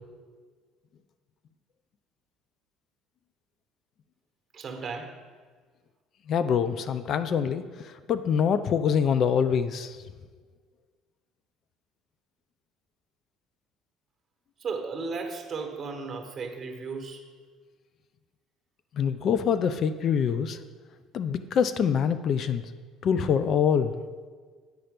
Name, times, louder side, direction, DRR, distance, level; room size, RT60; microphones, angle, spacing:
voice 1, 4.5-5.2 14.6-17.2, right 4 dB, 40° right, 4 dB, 1.2 m, -35 dB
voice 2, 6.3-10.0 18.9-20.6 21.1-22.6 23.0-24.0, left 7 dB, 55° left, 12 dB, 0.4 m, -25 dB
9.3 x 4.3 x 5.1 m, 1.5 s
supercardioid pair, 85°, 0 cm